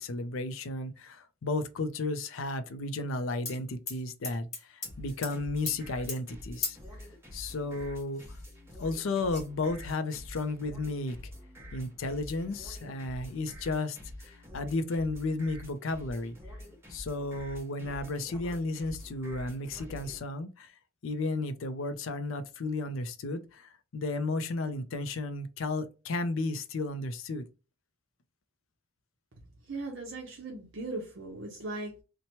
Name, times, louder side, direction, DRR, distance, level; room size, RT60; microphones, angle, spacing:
voice 1, 0.0-6.8 7.3-8.2 8.8-11.2 11.7-16.3 16.9-20.7 21.0-27.4, left 2 dB, 70° left, 0.5 m, -33 dB
sound 1, 3.5-3.6 3.9-4.9 5.2-5.4 5.7-5.8 6.1-6.2 6.6-6.9 7.8-7.9 8.2-8.9 9.3-9.4, left 4 dB, 30° left, 0.9 m, -37 dB
sound 2, 4.8-20.2, left 1 dB, 10° right, 0.8 m, -47 dB
voice 2, 29.7-32.0, right 2 dB, 60° right, 0.6 m, -38 dB
2.9 x 2.1 x 2.8 m
head